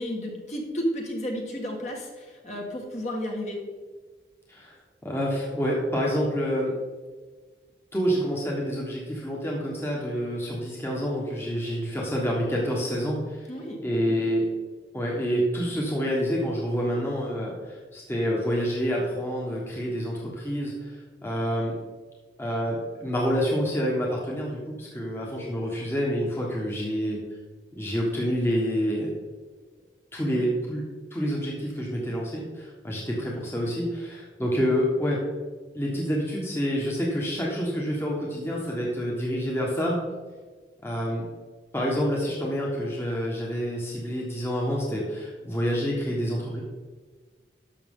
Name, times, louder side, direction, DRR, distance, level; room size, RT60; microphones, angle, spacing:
voice 1, 0.0-3.6 13.5-14.2 30.3-30.5, equal, 40° left, 0 dB, 1.7 m, -32 dB
voice 2, 5.0-6.7 7.9-13.5 13.8-14.4 14.9-20.9 21.2-21.7 22.4-27.2 27.8-29.1 30.1-30.8 31.1-35.2 35.7-40.0 40.8-41.2 41.7-46.6, equal, 15° left, -4 dB, 1.4 m, -28 dB
11.5 x 6.7 x 3.8 m, 1.4 s
head